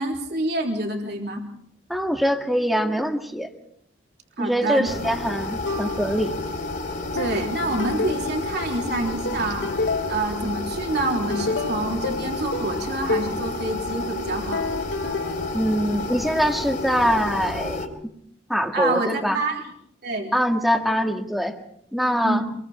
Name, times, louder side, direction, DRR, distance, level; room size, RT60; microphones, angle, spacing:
voice 1, 0.0-1.4 4.4-4.9 7.1-9.7 10.1-14.6 18.7-19.6 20.0-20.3 22.2-22.4, right 2 dB, 60° right, 1 dB, 3.7 m, -27 dB
voice 2, 1.9-3.5 4.4-6.4 15.5-17.9 18.5-19.4 20.3-21.6 21.9-22.5, equal, ahead, 4 dB, 1.9 m, -23 dB
sound 1, 4.8-17.9, left 2 dB, 45° left, 3.7 m, -30 dB
sound 2, 5.6-6.5 7.2-8.8 9.3-10.5 10.9-13.4 14.5-16.3, left 3 dB, 70° left, 1.6 m, -30 dB
27.5 x 22.5 x 4.4 m, 0.69 s
head